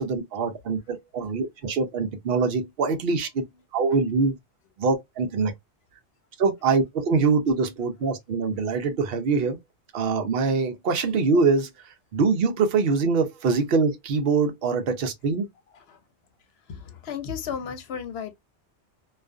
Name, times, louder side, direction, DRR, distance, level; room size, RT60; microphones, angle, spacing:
voice 1, 0.0-3.4 3.7-4.3 4.8-5.5 6.4-9.6 9.9-11.7 12.1-15.5, right 4 dB, 60° right, 0.8 m, -24 dB
voice 2, 16.7-18.3, left 7 dB, 65° left, 0.8 m, -34 dB
2.4 x 2.4 x 2.3 m
omnidirectional pair, 1.2 m